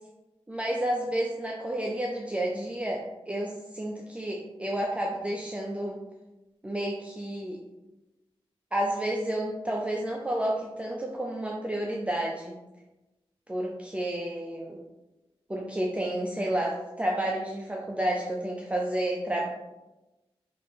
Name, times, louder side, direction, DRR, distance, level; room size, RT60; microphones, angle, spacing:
voice 1, 0.5-6.0 6.6-7.6 8.7-12.6 13.5-14.8 15.5-19.5, right 1 dB, 10° right, -2 dB, 0.4 m, -30 dB
2.8 x 2.6 x 4.2 m, 1.0 s
wide cardioid pair, 85°, 10 cm